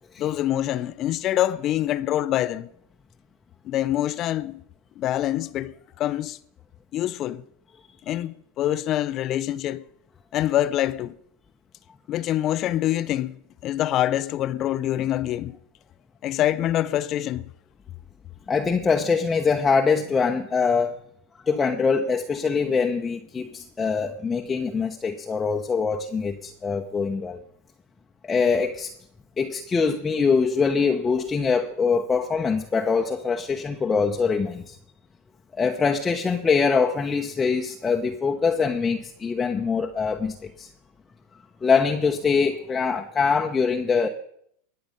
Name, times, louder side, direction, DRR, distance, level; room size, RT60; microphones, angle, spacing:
voice 1, 0.2-2.7 3.6-4.6 5.0-6.4 6.9-7.4 8.1-9.8 10.3-11.1 12.1-13.4 13.6-15.6 16.2-17.5, left 12 dB, 45° left, 0.7 m, -25 dB
voice 2, 18.5-21.0 21.4-27.4 28.2-28.9 29.4-34.7 35.6-40.7 41.6-44.1, left 5 dB, 20° left, 1.0 m, -23 dB
21.0 x 7.8 x 5.5 m
hypercardioid pair, 110°, 0 cm